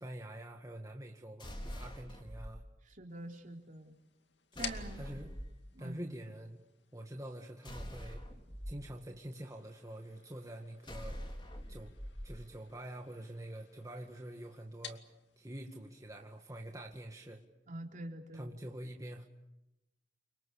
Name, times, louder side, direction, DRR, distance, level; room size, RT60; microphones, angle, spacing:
voice 1, 0.0-2.6 4.5-5.4 5.8-6.6 6.9-8.2 8.7-11.2 11.7-11.9 12.2-15.0 15.4-17.4 18.3-19.3, right 1 dB, 20° right, 2 dB, 2.0 m, -46 dB
sound 1, 1.4-2.5 4.5-5.6 7.6-8.7 10.8-12.3, equal, 30° left, 4.3 m, -44 dB
voice 2, 3.0-4.0 4.6-5.2 5.7-6.1 17.7-18.5, right 1 dB, 45° right, 2 dB, 3.9 m, -45 dB
sound 2, 3.1-17.4, left 8 dB, 75° left, 2.4 m, -54 dB
30.0 x 26.0 x 6.7 m, 0.92 s
head